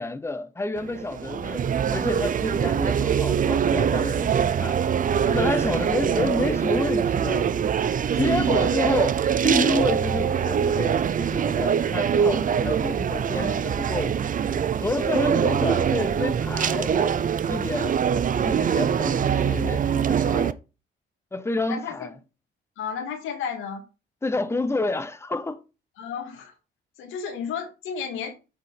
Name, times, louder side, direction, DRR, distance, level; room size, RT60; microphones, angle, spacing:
voice 1, 0.0-4.8 5.3-7.5 8.1-14.2 14.8-17.1 17.5-18.0 18.4-20.6 21.3-22.1 24.2-25.6, left 2 dB, 15° left, 0.9 m, -29 dB
sound 1, 0.8-20.5, right 8 dB, 45° right, 0.6 m, -23 dB
voice 2, 8.4-8.7 13.3-13.6 19.2-19.6 21.7-22.1 22.8-23.8 26.0-26.5 27.0-28.3, left 6 dB, 90° left, 2.3 m, -33 dB
8.2 x 4.6 x 5.8 m
cardioid pair, 90°, 20 cm